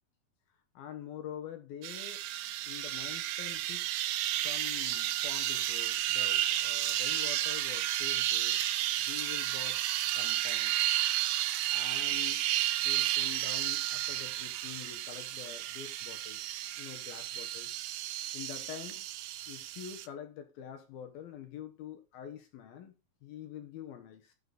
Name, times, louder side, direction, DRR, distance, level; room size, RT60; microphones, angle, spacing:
voice 1, 0.8-2.2 2.7-3.9 4.3-8.6 9.0-9.8 10.2-10.8 11.7-12.4 12.8-17.7 18.3-19.1 19.5-22.9 23.2-24.3, left 9 dB, 65° left, 2.7 m, -46 dB
sound 1, 1.8-20.1, right 14 dB, 90° right, 2.0 m, -32 dB
12.5 x 6.7 x 4.0 m
omnidirectional pair, 5.1 m